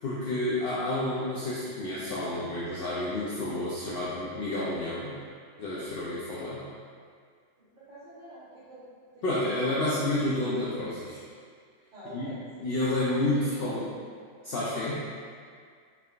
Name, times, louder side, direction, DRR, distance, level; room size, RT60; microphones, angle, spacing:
voice 1, 0.0-5.1 5.6-6.6 9.2-11.2 12.1-12.3 12.6-13.9 14.4-15.0, left 1 dB, 60° left, -8 dB, 0.7 m, -30 dB
voice 2, 7.6-8.8 9.1-9.3 11.9-12.7 13.3-13.7, equal, 45° right, -14 dB, 0.9 m, -47 dB
3.8 x 3.2 x 2.4 m, 2.1 s
omnidirectional pair, 1.2 m